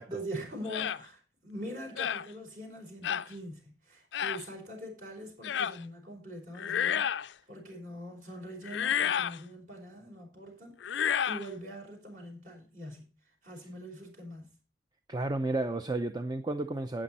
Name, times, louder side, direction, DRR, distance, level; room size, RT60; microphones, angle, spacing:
voice 1, 0.1-13.1 13.4-14.5, equal, 45° right, 4.6 m, -43 dB
sound 1, 0.7-1.0 2.0-2.3 3.0-3.3 4.1-4.4 5.4-5.8 6.5-7.3 8.6-9.4 10.8-11.5, left 8 dB, 70° left, 0.4 m, -30 dB
voice 2, 15.1-17.0, right 2 dB, 20° right, 0.6 m, -32 dB
11.5 x 8.7 x 4.2 m
head